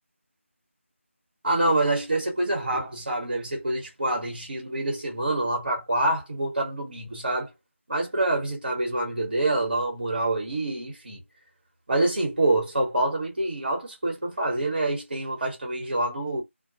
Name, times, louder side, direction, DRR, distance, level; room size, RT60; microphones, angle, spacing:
voice 1, 1.4-7.5 7.9-11.2 11.9-16.4, right 2 dB, 45° right, 0.9 m, -26 dB
2.3 x 2.1 x 2.7 m
figure-of-eight pair, 165°, 7 cm